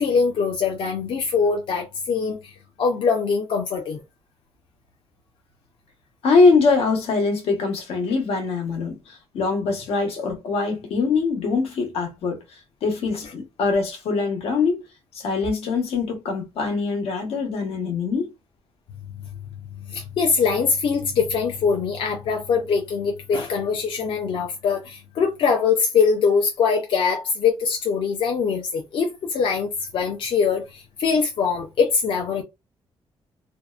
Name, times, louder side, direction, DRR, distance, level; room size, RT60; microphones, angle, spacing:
voice 1, 0.0-2.5 2.8-4.0 19.9-32.4, left 5 dB, 60° left, 0.5 m, -22 dB
voice 2, 6.2-12.4 12.8-14.8 15.1-18.3, left 4 dB, 85° left, 1.0 m, -23 dB
2.6 x 2.1 x 2.4 m
cardioid pair, 160°, 10 cm